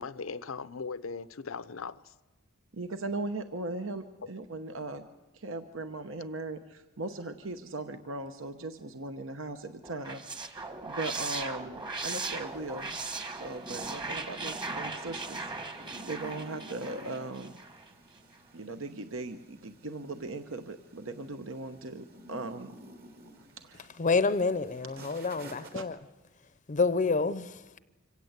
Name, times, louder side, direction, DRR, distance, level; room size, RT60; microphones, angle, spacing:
voice 1, 0.0-2.1, left 5 dB, 85° left, 0.7 m, -39 dB
voice 2, 2.7-5.0 5.3-13.0 13.3-17.5 18.5-22.7 23.6-23.9 25.0-25.3 25.7-25.8, right 2 dB, 70° right, 1.0 m, -39 dB
sound 1, 9.8-17.9, right 3 dB, 25° right, 1.4 m, -38 dB
sound 2, 12.1-25.8, right 1 dB, 50° right, 2.3 m, -53 dB
voice 3, 24.0-26.0 26.7-27.8, left 4 dB, 40° left, 0.6 m, -28 dB
25.5 x 17.0 x 8.1 m
head